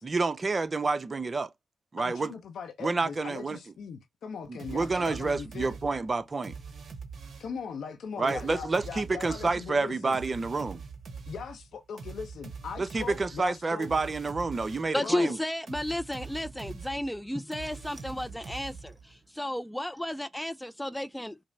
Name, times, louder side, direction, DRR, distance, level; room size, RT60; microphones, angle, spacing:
voice 1, 0.0-1.5 1.9-2.3 2.8-3.6 4.5-6.5 8.2-10.8 12.8-15.4, right 3 dB, 40° right, 0.6 m, -29 dB
voice 2, 2.0-5.8 7.4-10.2 11.3-13.9 15.0-15.4, left 6 dB, 65° left, 0.6 m, -40 dB
sound 1, 4.6-7.6 8.3-15.0 15.7-19.2, right 5 dB, 55° right, 1.0 m, -44 dB
voice 3, 14.9-21.4, left 1 dB, 5° left, 0.3 m, -33 dB
5.0 x 2.0 x 2.6 m
hypercardioid pair, 40°, 0 cm